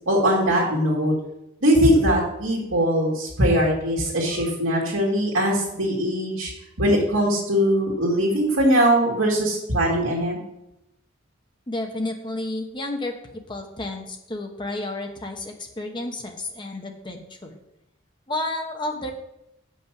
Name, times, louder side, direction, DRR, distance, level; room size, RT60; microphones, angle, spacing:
voice 1, 0.1-1.1 1.6-6.5 6.8-10.4, equal, 70° right, -4 dB, 2.0 m, -21 dB
voice 2, 11.7-17.6 18.3-19.1, left 2 dB, 20° left, 3 dB, 0.9 m, -31 dB
7.3 x 5.6 x 6.0 m, 0.85 s
head